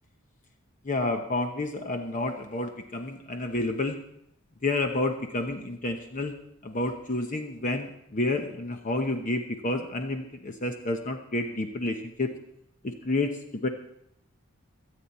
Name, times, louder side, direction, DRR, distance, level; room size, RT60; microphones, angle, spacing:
voice 1, 0.8-4.0 4.6-6.3 6.6-12.4 12.8-13.7, left 2 dB, 40° left, 5 dB, 0.9 m, -30 dB
23.0 x 8.7 x 4.3 m, 0.74 s
head